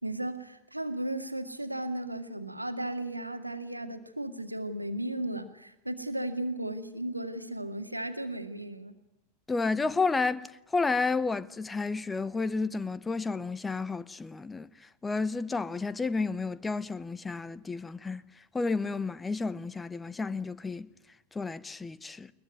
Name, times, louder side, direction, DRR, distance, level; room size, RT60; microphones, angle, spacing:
voice 1, 0.0-9.0, right 1 dB, 85° right, 2.2 m, -35 dB
voice 2, 9.5-10.5 10.7-14.7 15.0-18.2 18.5-20.9 21.3-22.3, left 4 dB, 10° left, 1.0 m, -31 dB
21.5 x 21.5 x 9.5 m
figure-of-eight pair, 90°, 0 cm